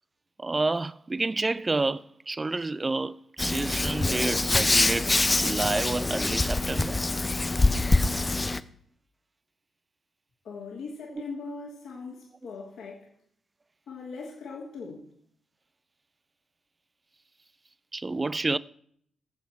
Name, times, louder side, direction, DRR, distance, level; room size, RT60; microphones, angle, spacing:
voice 1, 0.4-7.0 17.9-18.6, right 3 dB, 30° right, 0.5 m, -29 dB
Hands, 3.4-8.6, left 2 dB, 25° left, 0.7 m, -25 dB
voice 2, 10.4-13.1 13.9-15.1, left 4 dB, 70° left, 2.5 m, -40 dB
17.0 x 7.3 x 4.7 m
hypercardioid pair, 40°, 0 cm